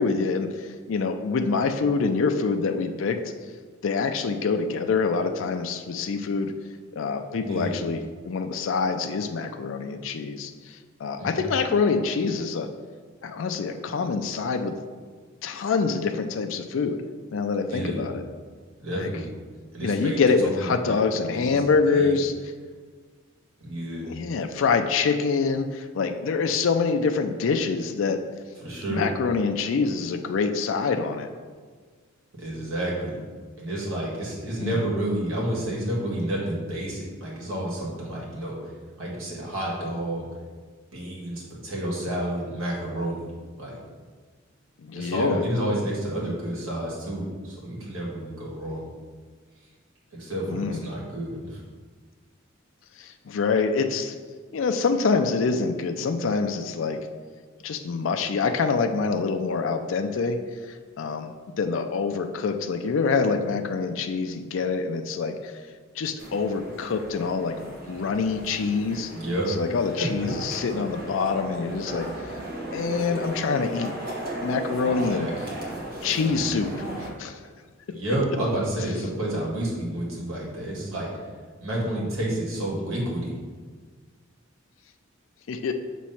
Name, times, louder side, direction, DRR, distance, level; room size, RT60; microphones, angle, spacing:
voice 1, 0.0-3.2 3.8-6.5 6.9-12.7 13.2-14.8 15.4-17.0 17.3-18.2 18.9-19.1 19.8-22.3 24.0-28.2 28.9-31.3 34.6-34.8 44.8-45.4 50.5-50.8 53.0-54.2 54.5-57.1 57.6-65.5 65.9-69.1 69.5-72.4 72.7-73.9 74.4-75.3 76.0-77.4 85.5-85.7, left 4 dB, 65° left, 6 dB, 0.4 m, -26 dB
voice 2, 7.4-7.7 11.2-11.5 17.7-18.0 18.8-19.3 19.7-20.9 21.3-21.6 21.9-22.1 23.6-24.1 28.6-29.0 32.4-33.2 33.6-38.7 39.0-40.2 40.9-43.3 43.6-43.8 44.9-48.8 50.2-51.6 69.1-69.5 70.0-70.1 74.8-75.5 77.9-81.1 81.6-83.4, right 1 dB, 80° right, -4 dB, 1.9 m, -30 dB
sound 1, 66.2-77.1, right 1 dB, 45° right, 1.4 m, -36 dB
6.2 x 3.1 x 5.7 m, 1.5 s
head